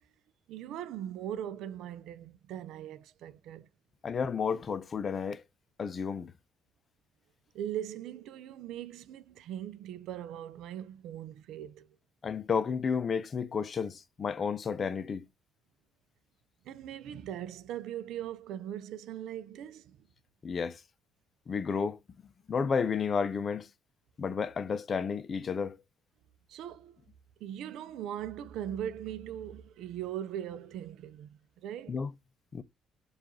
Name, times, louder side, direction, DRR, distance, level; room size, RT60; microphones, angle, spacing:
voice 1, 0.5-3.7 7.5-11.9 16.6-20.0 26.5-27.0 27.4-32.0, right 10 dB, 75° right, 0.4 m, -40 dB
voice 2, 4.0-5.4 5.8-6.3 12.2-15.3 20.4-20.8 21.5-22.0 22.5-23.7 24.2-25.8 31.9-32.1 32.5-32.6, left 6 dB, 45° left, 0.5 m, -31 dB
4.7 x 2.5 x 2.9 m
supercardioid pair, 65°, 0 cm